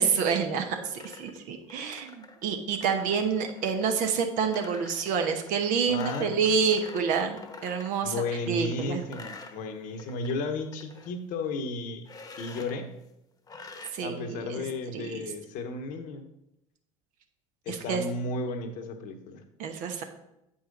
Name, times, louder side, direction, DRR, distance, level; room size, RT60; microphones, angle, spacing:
voice 1, 0.0-8.1 8.5-9.0 13.9-14.6 14.9-15.3 17.7-18.0 19.6-20.0, right 6 dB, 55° right, 5 dB, 1.1 m, -28 dB
sound 1, 0.7-8.0 8.4-10.3 10.6-11.1 12.0-12.8 13.5-13.9, left 3 dB, 20° left, 1.1 m, -47 dB
voice 2, 5.9-6.5 8.0-12.1 12.4-13.0 14.0-16.3 17.6-19.4, left 3 dB, 55° left, 7 dB, 1.1 m, -34 dB
8.3 x 5.4 x 3.9 m, 0.84 s
hypercardioid pair, 70°, 17 cm